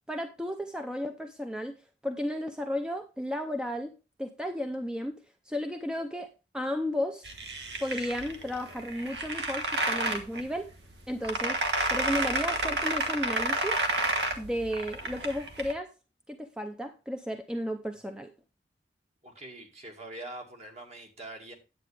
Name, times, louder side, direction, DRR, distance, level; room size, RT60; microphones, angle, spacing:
voice 1, 0.1-1.8 2.0-3.9 4.2-5.2 5.5-6.3 6.5-7.3 7.8-10.7 11.1-11.6 11.9-13.8 14.4-15.9 16.3-18.3, equal, 5° right, 6 dB, 0.6 m, -33 dB
sound 1, 7.2-15.7, right 2 dB, 70° right, 1.5 m, -31 dB
voice 2, 19.2-21.5, right 2 dB, 40° right, 3 dB, 2.0 m, -43 dB
9.7 x 8.5 x 3.3 m, 0.29 s
head